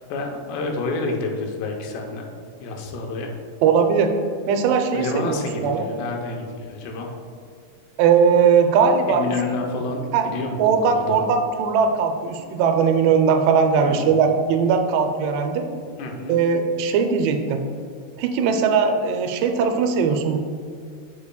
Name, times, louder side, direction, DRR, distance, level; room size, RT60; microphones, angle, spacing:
voice 1, 0.1-2.3 2.6-3.3 4.9-7.1 9.1-11.2 13.8-14.2 16.0-16.4, left 3 dB, 90° left, 2 dB, 2.8 m, -29 dB
voice 2, 3.6-4.1 4.5-5.9 8.0-9.3 10.1-10.3 10.6-15.6 16.3-17.6 18.2-20.4, right 6 dB, 90° right, 6 dB, 2.7 m, -19 dB
8.3 x 5.0 x 2.2 m, 2.2 s
omnidirectional pair, 4.7 m